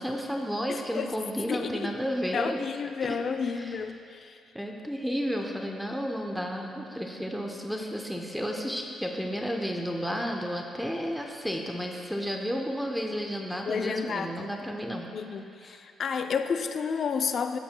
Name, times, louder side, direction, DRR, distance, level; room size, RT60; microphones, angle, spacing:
voice 1, 0.0-2.6 3.0-3.8 4.5-15.1 15.6-15.8, equal, ahead, 1 dB, 0.7 m, -32 dB
voice 2, 0.7-1.1 1.5-1.9 2.3-4.3 13.7-14.5 15.1-17.6, left 6 dB, 55° left, 8 dB, 0.5 m, -31 dB
15.0 x 6.6 x 2.2 m, 2.4 s
cardioid pair, 90°, 0 cm